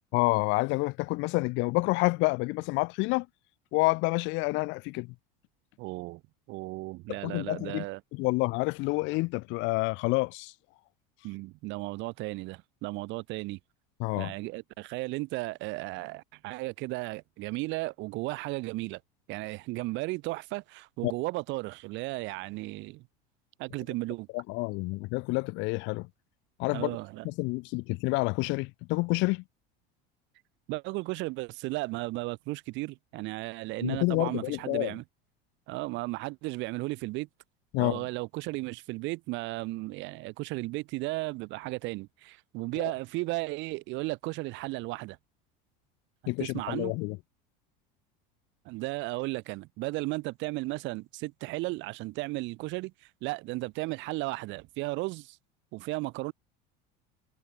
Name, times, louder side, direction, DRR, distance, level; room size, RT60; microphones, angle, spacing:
voice 1, 0.1-3.3 3.7-5.1 7.2-7.8 8.1-10.5 14.0-14.3 21.0-21.1 24.3-26.1 26.6-27.0 27.2-29.4 33.8-35.0 37.7-38.0 42.8-42.9 46.3-47.2, left 25 dB, 65° left, 2.7 m, -28 dB
voice 2, 5.8-6.2 6.5-8.0 11.2-13.6 14.2-19.0 19.3-23.0 23.6-24.3 26.7-27.3 30.7-35.0 35.7-37.3 37.8-45.2 46.4-46.9 48.6-55.4 55.7-56.3, right 22 dB, 60° right, 4.3 m, -35 dB
supercardioid pair, 110°, 21 cm